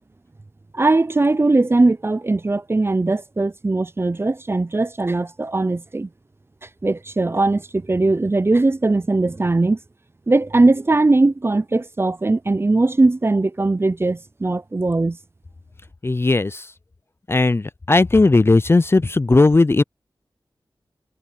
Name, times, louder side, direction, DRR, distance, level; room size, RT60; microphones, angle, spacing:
voice 1, 0.7-6.1 6.8-9.8 10.3-15.2, right 2 dB, 30° right, 0.5 m, -19 dB
voice 2, 16.0-16.7 17.3-19.8, left 3 dB, 30° left, 0.4 m, -16 dB
wide cardioid pair, 70°, 9 cm